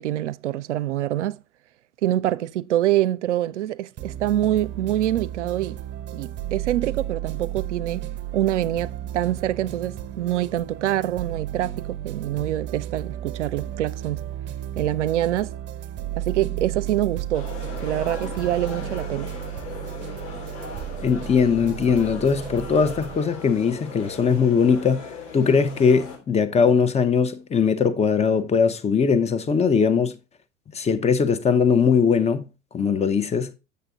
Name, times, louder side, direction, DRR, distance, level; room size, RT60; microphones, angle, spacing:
voice 1, 0.0-1.4 2.0-5.8 6.1-8.0 8.3-14.3 14.8-15.5 16.2-17.5 17.8-19.3, right 13 dB, 70° right, 0.6 m, -25 dB
sound 1, 4.0-23.2, right 12 dB, 30° right, 0.8 m, -33 dB
sound 2, 17.3-26.2, left 5 dB, 60° left, 3.4 m, -38 dB
voice 2, 21.0-30.1 30.7-32.5 32.7-33.5, left 6 dB, 15° left, 0.8 m, -20 dB
7.9 x 6.8 x 3.7 m
figure-of-eight pair, 85°, 37 cm